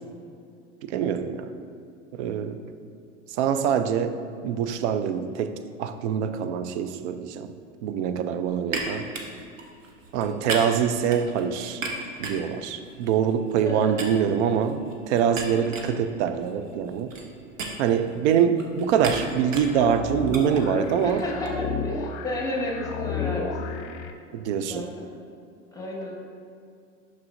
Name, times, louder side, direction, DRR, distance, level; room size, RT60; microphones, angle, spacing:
voice 1, 0.9-1.5 2.1-2.6 3.4-4.1 4.4-5.5 5.8-7.5 7.8-9.1 10.1-11.8 12.2-14.8 15.1-17.1 17.8-21.2 24.3-24.9, right 8 dB, 65° right, 10 dB, 0.6 m, -24 dB
sound 1, 8.7-13.7 14.0-21.5, right 3 dB, 85° right, 1.0 m, -36 dB
sound 2, 19.1-24.1, left 5 dB, 45° left, 0.7 m, -33 dB
voice 2, 21.0-23.9 24.7-25.1 25.7-26.2, left 1 dB, 10° left, -2 dB, 1.3 m, -32 dB
8.2 x 6.1 x 2.6 m, 2.4 s
hypercardioid pair, 90°, 37 cm